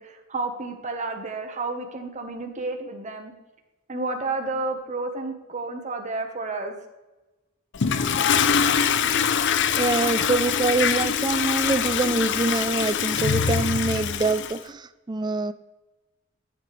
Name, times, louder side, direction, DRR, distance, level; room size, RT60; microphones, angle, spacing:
voice 1, 0.0-3.3 3.9-6.7, right 3 dB, 35° right, 4 dB, 1.2 m, -31 dB
Toilet flush, 7.7-14.6, left 7 dB, 60° left, 0.6 m, -23 dB
voice 2, 9.8-15.5, right 3 dB, 20° right, 14 dB, 0.4 m, -25 dB
13.0 x 7.6 x 3.3 m, 1.1 s
head